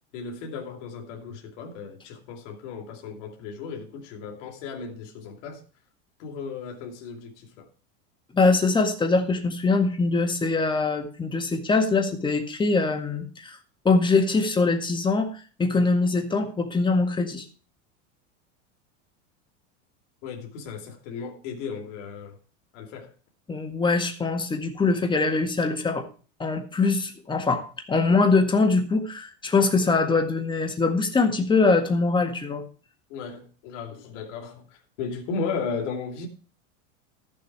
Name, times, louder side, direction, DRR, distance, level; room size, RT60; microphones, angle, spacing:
voice 1, 0.1-5.6 6.2-7.7 20.2-22.4 22.7-23.1 33.1-36.3, left 5 dB, 65° left, 2.8 m, -35 dB
voice 2, 8.3-13.6 13.9-17.5 23.5-26.1 26.4-32.6, left 3 dB, 10° left, 1.8 m, -23 dB
14.0 x 7.1 x 4.7 m
supercardioid pair, 140°, 38 cm